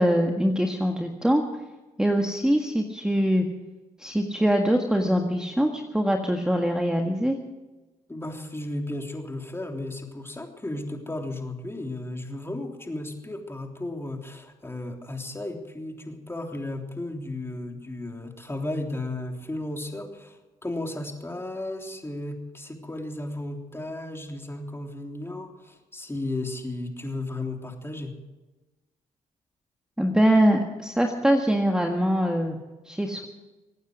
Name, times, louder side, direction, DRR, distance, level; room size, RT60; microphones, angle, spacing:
voice 1, 0.0-1.4 2.0-3.5 4.0-7.4 30.0-32.6 32.8-33.2, equal, 5° right, 3 dB, 1.7 m, -23 dB
voice 2, 8.1-28.1, left 2 dB, 15° left, 2 dB, 3.3 m, -34 dB
24.5 x 9.3 x 6.4 m, 1.1 s
supercardioid pair, 65°, 16 cm